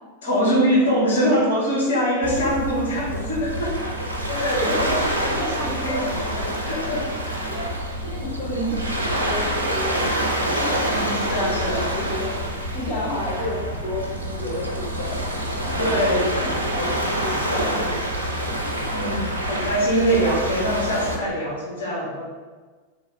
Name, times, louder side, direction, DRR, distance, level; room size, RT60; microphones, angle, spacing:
voice 1, 0.2-3.8 4.4-4.8 5.2-7.5 8.4-8.8 10.8-11.9 15.8-16.3 17.6-17.9 18.9-22.3, equal, 65° left, -6 dB, 1.1 m, -24 dB
Waves surf, 2.2-21.2, right 1 dB, 85° right, 0.5 m, -26 dB
voice 2, 4.3-6.1 7.4-7.7 8.0-8.8 9.0-11.6 11.9-12.4 12.7-15.2 15.5-19.1, left 2 dB, 40° left, -6 dB, 1.0 m, -32 dB
3.6 x 2.7 x 3.3 m, 1.4 s
figure-of-eight pair, 90°, 0 cm